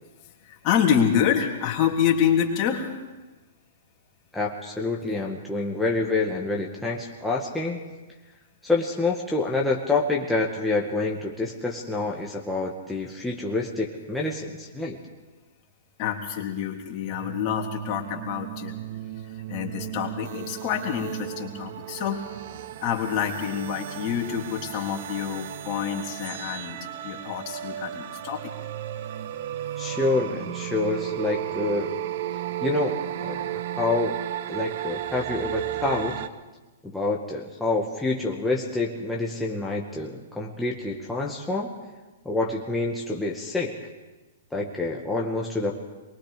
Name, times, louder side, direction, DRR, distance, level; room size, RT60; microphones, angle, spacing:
voice 1, 0.4-2.9 16.0-18.8 19.2-22.2 22.8-26.8 27.0-28.5, left 8 dB, 40° left, 1 dB, 3.3 m, -27 dB
voice 2, 4.3-7.8 8.6-15.0 29.8-31.9 32.6-32.9 33.2-34.2 34.5-36.2 36.8-41.7 42.3-43.8 44.5-45.8, left 3 dB, 5° left, -3 dB, 1.9 m, -27 dB
sound 1, 17.1-36.3, right 12 dB, 55° right, 1.0 m, -34 dB
24.0 x 22.0 x 5.1 m, 1.2 s
hypercardioid pair, 120°, 0 cm